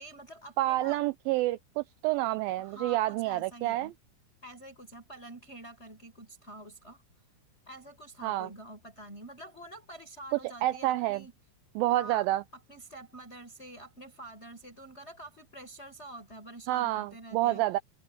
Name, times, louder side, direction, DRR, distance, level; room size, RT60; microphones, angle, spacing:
voice 1, 0.0-1.0 2.6-3.9 4.4-7.0 7.7-11.3 11.9-12.2 12.5-17.6, right 1 dB, 15° left, 7.4 m, -47 dB
voice 2, 0.6-3.9 8.2-8.5 10.6-11.2 11.8-12.4 16.7-17.8, right 16 dB, 80° right, 2.1 m, -28 dB
omnidirectional pair, 4.7 m